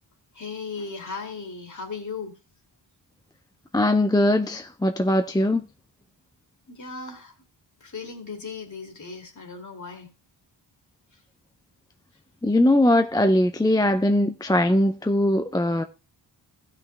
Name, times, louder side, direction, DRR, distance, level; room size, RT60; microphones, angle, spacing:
voice 1, 0.3-2.3 6.7-7.4 7.8-10.1 11.1-11.2 13.8-13.9, left 4 dB, 45° left, 2.6 m, -37 dB
voice 2, 3.7-5.7 12.4-15.8, left 1 dB, 10° left, 0.5 m, -21 dB
15.5 x 5.9 x 3.3 m
wide cardioid pair, 105°, 42 cm